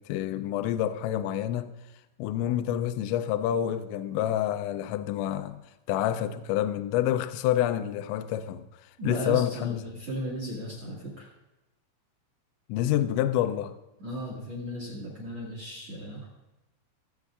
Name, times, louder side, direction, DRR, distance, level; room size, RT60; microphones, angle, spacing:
voice 1, 0.0-1.7 2.2-5.6 5.9-8.6 9.0-9.8 12.7-13.7, left 11 dB, 90° left, 2.6 m, -28 dB
voice 2, 9.0-11.3 14.0-16.3, right 1 dB, 55° right, 1.7 m, -36 dB
20.5 x 8.0 x 2.4 m
omnidirectional pair, 5.8 m